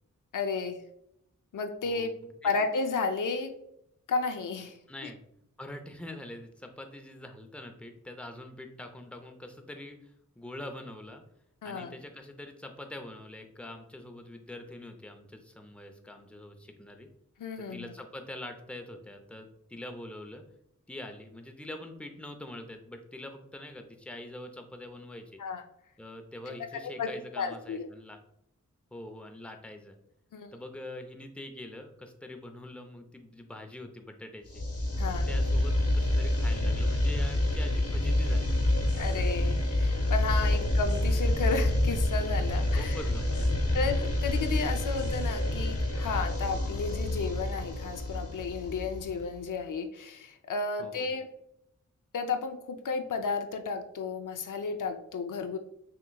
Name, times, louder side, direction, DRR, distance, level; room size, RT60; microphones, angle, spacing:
voice 1, 0.3-0.8 1.5-2.1 2.4-3.5 4.1-4.8 5.0-5.1 11.6-12.0 17.4-17.9 25.4-25.6 26.5-27.1 27.4-27.9 30.3-30.5 35.0-35.3 39.0-43.0 43.7-51.3 52.1-55.6, left 4 dB, 80° left, 6 dB, 0.5 m, -33 dB
voice 2, 1.8-2.5 4.9-5.2 5.6-11.2 11.6-17.1 17.6-20.4 20.9-25.4 26.0-28.2 28.9-30.0 30.5-34.6 35.3-38.5 40.5-40.7 42.8-43.7 50.8-51.1, left 1 dB, 5° left, 5 dB, 0.6 m, -44 dB
sound 1, 34.5-49.3, left 1 dB, 50° left, 0.9 m, -28 dB
5.8 x 3.0 x 2.3 m, 0.75 s
wide cardioid pair, 55°, 31 cm